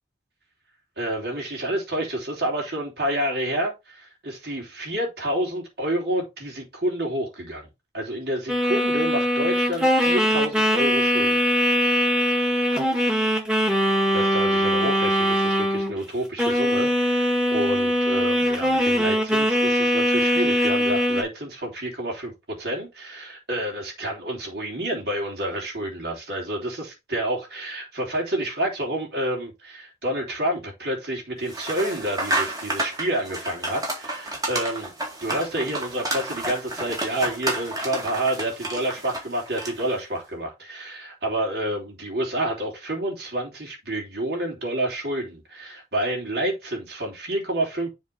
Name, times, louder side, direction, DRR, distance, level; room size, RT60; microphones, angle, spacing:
voice 1, 1.0-7.7 7.9-11.4 14.1-34.9 35.2-47.9, right 1 dB, 60° right, 3.4 m, -29 dB
sound 1, 8.5-16.0 16.4-21.2, equal, 5° right, 1.8 m, -21 dB
sound 2, 31.5-40.0, right 1 dB, 20° right, 2.1 m, -30 dB
7.2 x 3.9 x 5.2 m
head